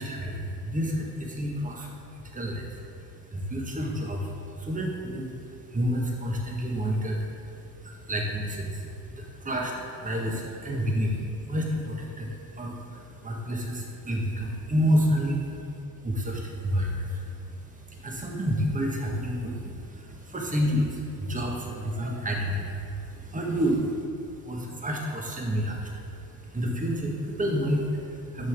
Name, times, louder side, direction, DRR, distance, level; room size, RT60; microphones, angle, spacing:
voice 1, 0.0-28.5, equal, 15° right, 0 dB, 1.6 m, -30 dB
9.6 x 6.2 x 3.7 m, 2.5 s
hypercardioid pair, 65°, 46 cm